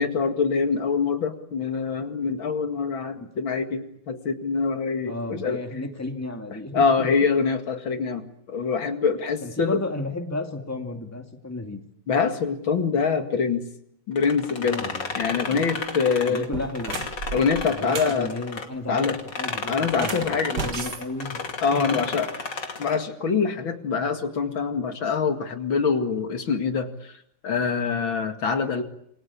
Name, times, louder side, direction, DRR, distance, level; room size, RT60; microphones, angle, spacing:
voice 1, 0.0-5.6 6.7-9.8 12.1-13.6 14.1-14.9 15.2-16.5 17.3-18.3 18.9-19.2 19.7-20.6 21.6-22.3 22.8-27.1 27.4-28.8, left 5 dB, 80° left, 6 dB, 2.9 m, -24 dB
voice 2, 5.1-7.1 9.4-11.8 14.6-15.6 16.3-17.0 17.7-19.0 19.4-21.4 21.7-22.1, left 2 dB, 10° left, 4 dB, 2.6 m, -33 dB
sound 1, 14.2-18.7 18.9-23.0, left 4 dB, 60° left, 3.2 m, -33 dB
sound 2, 15.7-15.9 16.4-18.2 19.9-21.9, right 5 dB, 55° right, 2.3 m, -35 dB
28.0 x 23.5 x 8.6 m, 0.75 s
omnidirectional pair, 2.1 m